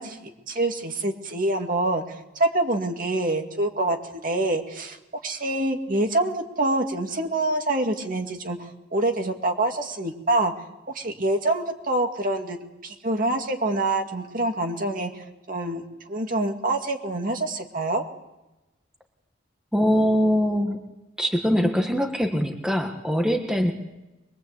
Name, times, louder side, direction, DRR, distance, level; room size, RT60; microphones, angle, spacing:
voice 1, 0.0-5.0 5.2-10.5 10.9-12.6 12.8-15.8 16.1-18.0, right 2 dB, 45° right, 4 dB, 2.3 m, -26 dB
voice 2, 19.7-20.8 21.2-23.7, equal, 5° right, 3 dB, 1.5 m, -22 dB
23.0 x 22.5 x 8.2 m, 1.0 s
head